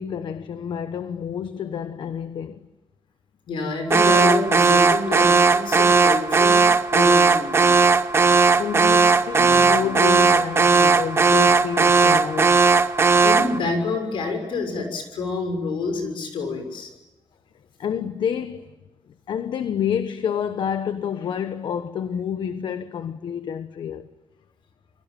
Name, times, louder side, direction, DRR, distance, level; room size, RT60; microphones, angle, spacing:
voice 1, 0.0-2.7 8.6-12.6 17.8-18.7 19.3-24.1, left 8 dB, 65° left, 1.1 m, -29 dB
voice 2, 3.5-6.6 6.9-7.7 13.2-16.9, left 3 dB, 80° left, 6.4 m, -27 dB
Alarm, 3.9-13.6, right 4 dB, 30° right, 0.9 m, -17 dB
sound 1, 9.3-10.9, left 2 dB, 20° left, 3.2 m, -39 dB
29.0 x 22.0 x 9.1 m
wide cardioid pair, 140°, 8 cm